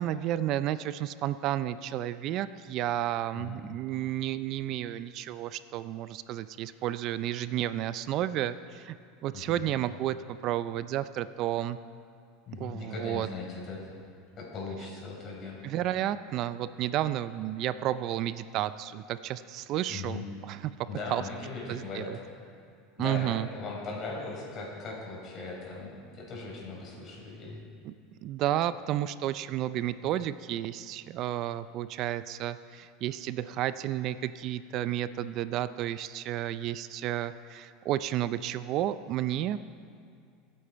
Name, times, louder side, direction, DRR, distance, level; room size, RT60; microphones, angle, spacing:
voice 1, 0.0-9.0 9.2-11.8 12.6-13.3 15.6-20.7 21.1-21.2 21.7-22.2 23.0-23.5 27.8-27.9 28.2-39.6, right 12 dB, 45° right, 14 dB, 0.4 m, -32 dB
voice 2, 3.3-3.6 9.3-9.7 12.5-13.9 14.4-15.6 19.9-20.3 20.9-22.1 23.0-27.6 29.9-30.1, left 3 dB, 35° left, -3 dB, 4.4 m, -39 dB
24.0 x 8.7 x 4.5 m, 2.3 s
supercardioid pair, 145°, 0 cm